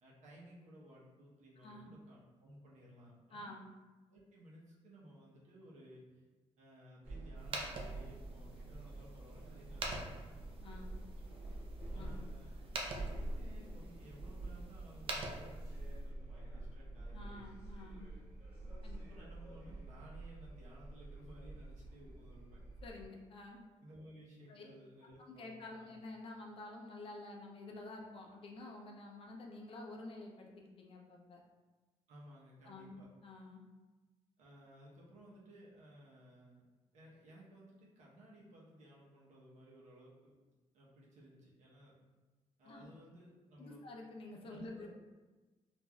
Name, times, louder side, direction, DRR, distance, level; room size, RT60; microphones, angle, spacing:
voice 1, 0.0-3.5 4.1-6.2 6.6-10.4 11.2-11.5 11.9-12.5 12.9-17.4 19.0-22.6 23.8-25.9 32.1-33.1 34.4-36.6 36.9-40.3 40.7-41.9 42.6-43.8 44.5-44.9, equal, 75° right, -4 dB, 0.8 m, -58 dB
voice 2, 1.6-1.9 3.3-3.7 10.6-10.9 11.9-12.2 17.1-18.1 18.8-19.0 22.8-23.6 24.5-24.6 25.3-31.4 32.7-33.0 33.2-33.7 42.6-42.9 43.6-44.9, left 2 dB, 50° left, 0 dB, 0.5 m, -50 dB
sound 1, 7.0-23.1, right 2 dB, 15° right, 1.5 m, -47 dB
sound 2, 7.4-16.1, right 2 dB, 50° right, 0.5 m, -47 dB
3.2 x 2.5 x 2.2 m, 1.2 s
cardioid pair, 130°, 12 cm